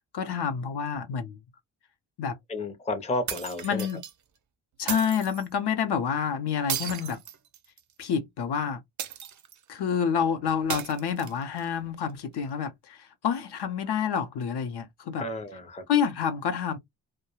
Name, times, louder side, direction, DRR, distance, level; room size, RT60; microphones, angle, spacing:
voice 1, 0.1-1.4 2.2-2.4 3.6-4.0 4.8-7.2 8.0-8.8 9.7-15.3 15.9-16.8, left 7 dB, 55° left, 0.6 m, -28 dB
voice 2, 2.5-3.9 15.2-15.8, left 2 dB, 15° left, 0.5 m, -32 dB
sound 1, 3.3-4.1 4.9-5.5 6.7-7.9 9.0-9.6 10.7-11.6, right 9 dB, 40° right, 0.4 m, -35 dB
2.3 x 2.1 x 2.9 m
cardioid pair, 105°, 47 cm